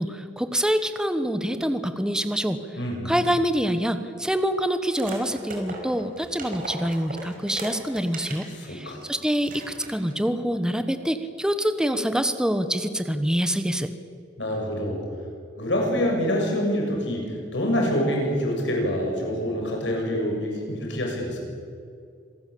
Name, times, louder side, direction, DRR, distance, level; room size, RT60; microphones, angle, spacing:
voice 1, 0.0-2.6 3.0-13.9, equal, 5° right, 9 dB, 1.2 m, -26 dB
voice 2, 2.8-3.1 8.6-9.0 14.4-15.0 15.6-21.4, equal, 70° left, 0 dB, 7.0 m, -26 dB
sound 1, 4.9-8.5 9.0-9.1 9.4-10.2, right 2 dB, 45° right, 5.3 m, -38 dB
26.5 x 18.0 x 8.6 m, 2.3 s
head